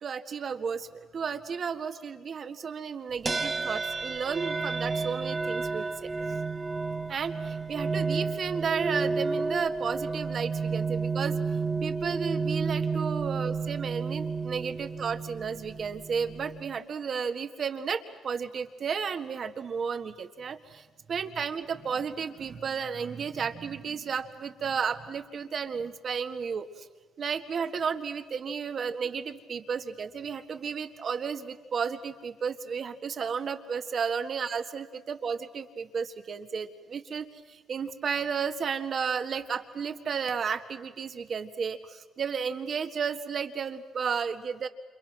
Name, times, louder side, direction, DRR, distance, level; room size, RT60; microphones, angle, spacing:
voice 1, 0.0-6.1 7.1-11.4 11.8-26.9 27.2-44.7, right 6 dB, 55° right, 8 dB, 1.8 m, -33 dB
sound 1, 3.3-16.8, right 4 dB, 25° right, 1.1 m, -31 dB
30.0 x 27.5 x 6.2 m, 1.3 s
cardioid pair, 90°, 0 cm